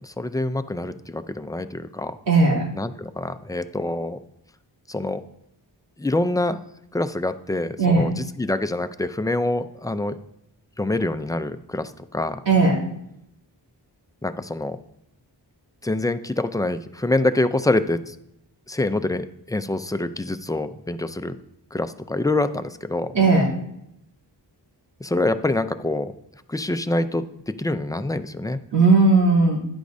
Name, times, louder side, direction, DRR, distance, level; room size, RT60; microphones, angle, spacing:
voice 1, 0.0-2.2 2.7-4.2 4.9-5.2 6.0-6.6 6.9-10.2 10.8-12.4 14.2-14.8 15.8-18.2 18.7-21.4 21.7-23.1 25.0-26.1 26.5-27.3 27.6-28.6, left 2 dB, 10° left, 10 dB, 0.4 m, -25 dB
voice 2, 2.3-2.6 7.8-8.0 12.5-12.8 23.1-23.5 28.7-29.6, right 3 dB, 80° right, -5 dB, 3.0 m, -16 dB
10.5 x 8.1 x 2.7 m, 0.79 s
wide cardioid pair, 75°, 42 cm